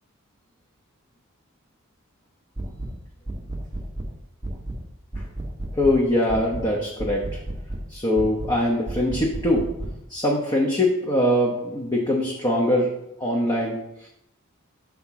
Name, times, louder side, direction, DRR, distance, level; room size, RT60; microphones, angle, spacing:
sound 1, 2.6-3.0 3.3-4.1 4.4-4.8 5.1-6.0 6.3-6.7 7.0-7.9 8.2-8.6 8.9-10.0, right 1 dB, 15° right, 0.6 m, -32 dB
voice 1, 5.7-7.4 7.9-9.7 10.1-12.9 13.2-14.1, left 1 dB, 20° left, -2 dB, 0.8 m, -22 dB
5.7 x 3.6 x 5.7 m, 0.82 s
head